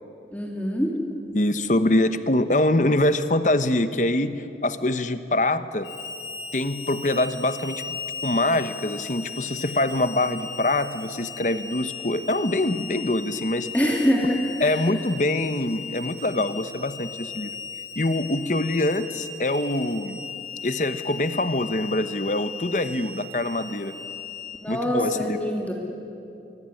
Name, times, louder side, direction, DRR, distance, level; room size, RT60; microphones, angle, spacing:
voice 1, 0.3-0.9 13.7-14.4 24.6-25.7, equal, 10° left, -1 dB, 2.9 m, -24 dB
voice 2, 1.3-5.9 6.5-7.8 8.2-13.7 14.6-17.5 18.0-20.2 20.6-23.9 24.7-25.4, left 1 dB, 45° left, 11 dB, 1.1 m, -24 dB
Harmonica, 5.8-24.6, left 5 dB, 85° left, 6.0 m, -37 dB
24.5 x 22.5 x 9.9 m, 2.7 s
head